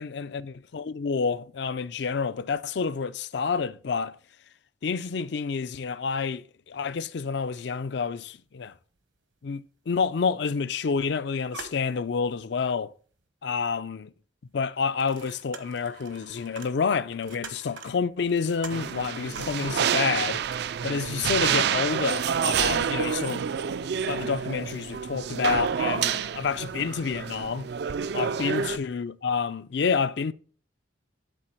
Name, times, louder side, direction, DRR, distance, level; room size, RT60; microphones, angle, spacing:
voice 1, 0.0-4.1 4.8-8.7 9.4-12.9 13.4-14.1 14.5-20.4 20.8-23.4 24.1-27.7 28.1-30.3, left 5 dB, 60° left, 0.4 m, -29 dB
sound 1, 8.3-8.4 8.7-8.9 9.8-9.9 10.4-11.1 11.3-12.5 13.0-13.1 14.7-19.5, right 4 dB, 75° right, 1.2 m, -45 dB
sound 2, 18.7-28.8, right 7 dB, 55° right, 0.3 m, -28 dB
11.5 x 4.0 x 4.4 m
head